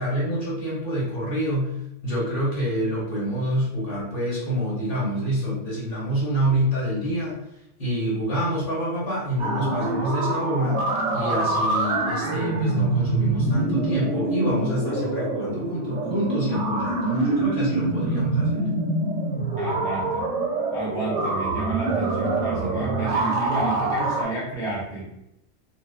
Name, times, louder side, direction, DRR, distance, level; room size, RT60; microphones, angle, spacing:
voice 1, 0.0-1.7 2.0-7.4 7.8-18.7, equal, 50° left, -5 dB, 1.0 m, -27 dB
sound 1, 9.4-24.2, right 2 dB, 75° right, 0.9 m, -25 dB
voice 2, 19.6-20.2 20.7-25.1, right 2 dB, 5° left, -6 dB, 0.5 m, -31 dB
2.4 x 2.4 x 2.3 m, 0.82 s
omnidirectional pair, 1.2 m